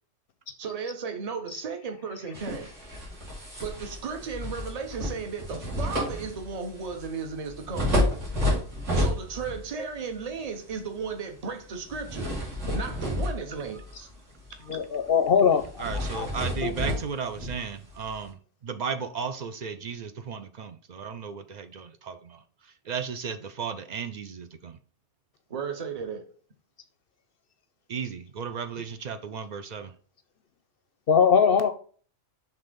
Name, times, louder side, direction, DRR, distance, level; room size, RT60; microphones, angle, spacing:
voice 1, 0.6-2.7 3.6-8.0 8.9-12.3 12.7-14.1 14.7-14.8 25.5-26.3, right 5 dB, 35° right, 0.9 m, -35 dB
sound 1, 2.3-9.7 10.0-10.3 11.9-14.1 14.4-14.7 14.9-15.1 15.6-18.2, left 1 dB, 75° right, 3.0 m, -30 dB
voice 2, 14.7-15.6 16.1-16.3 16.6-16.7 31.1-31.7, left 6 dB, 55° left, 0.7 m, -20 dB
voice 3, 15.8-24.8 27.9-29.9, right 6 dB, 60° right, 0.5 m, -35 dB
6.0 x 3.4 x 5.1 m
omnidirectional pair, 1.3 m